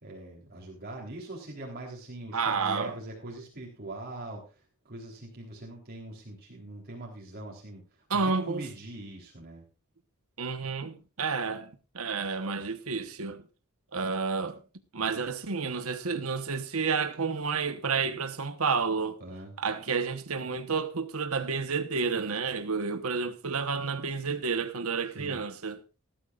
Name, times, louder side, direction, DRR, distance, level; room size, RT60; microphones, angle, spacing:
voice 1, 0.0-9.6 19.2-19.5 25.2-25.4, right 1 dB, 45° right, 3.6 m, -42 dB
voice 2, 2.3-2.9 8.1-8.6 10.4-13.4 13.9-14.6 14.9-19.2 19.6-25.8, right 5 dB, 75° right, 1.2 m, -30 dB
19.0 x 13.0 x 2.5 m
head